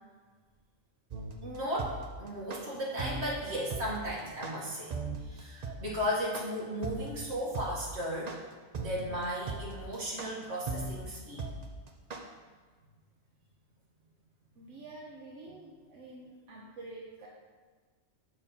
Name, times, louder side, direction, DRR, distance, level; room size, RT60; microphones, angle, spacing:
sound 1, 1.1-12.2, right 3 dB, 40° right, 0.6 m, -38 dB
voice 1, 1.4-4.9 5.3-8.4 8.8-11.5, equal, 60° right, -5 dB, 2.1 m, -35 dB
voice 2, 14.5-17.3, right 2 dB, 80° right, -3 dB, 1.2 m, -48 dB
6.8 x 4.5 x 5.6 m, 1.4 s
omnidirectional pair, 1.2 m